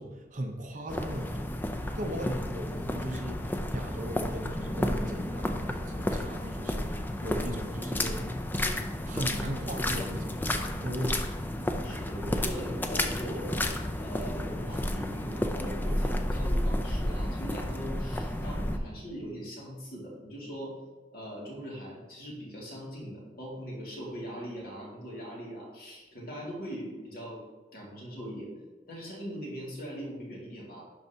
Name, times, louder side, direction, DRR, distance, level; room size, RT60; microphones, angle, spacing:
voice 1, 0.0-1.5 1.9-8.2 8.6-11.3, right 1 dB, 45° right, 3 dB, 0.8 m, -38 dB
sound 1, 0.9-18.8, left 1 dB, 10° left, 0.4 m, -32 dB
voice 2, 2.1-2.8 8.2-8.4 11.8-13.7 14.0-20.8 21.1-27.4 27.7-28.5 28.9-30.8, equal, 55° left, -3 dB, 2.1 m, -41 dB
11.5 x 4.5 x 2.8 m, 1.3 s
head